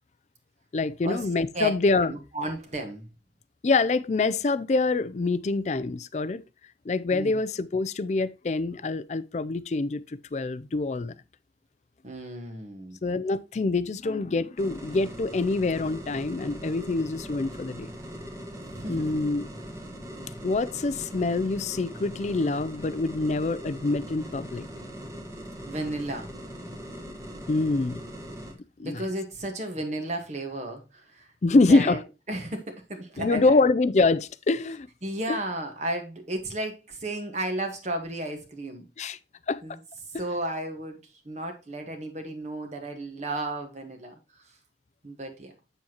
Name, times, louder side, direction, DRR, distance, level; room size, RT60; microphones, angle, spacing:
voice 1, 0.7-2.1 3.6-6.4 6.9-11.1 13.0-17.9 18.9-19.5 20.4-24.7 27.5-28.1 28.8-29.0 31.4-32.0 33.2-34.9 35.3-35.4 39.0-39.2 39.5-39.6, left 3 dB, 40° left, 0.4 m, -25 dB
voice 2, 2.0-3.1 7.1-7.4 12.0-13.0 18.6-19.3 25.6-26.3 28.8-32.0 32.3-33.7 35.0-38.9 39.6-39.8 40.2-41.0 41.2-44.1 45.0-45.5, right 1 dB, 40° right, 1.3 m, -33 dB
sound 1, 14.6-28.5, equal, 20° right, 1.3 m, -41 dB
7.8 x 7.1 x 2.9 m
head